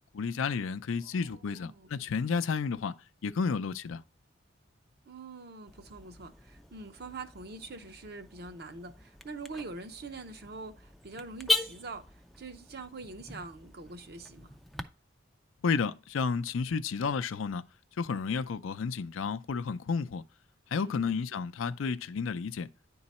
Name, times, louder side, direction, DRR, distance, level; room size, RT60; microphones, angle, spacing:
voice 1, 0.1-2.9 3.2-4.0 15.6-17.6 18.0-20.2 20.7-22.7, left 5 dB, 85° left, 0.4 m, -31 dB
voice 2, 1.0-1.9 5.0-14.5 20.7-21.2, right 3 dB, 55° right, 0.8 m, -44 dB
Car / Alarm, 5.7-14.8, left 2 dB, ahead, 0.3 m, -39 dB
9.7 x 3.9 x 4.2 m
head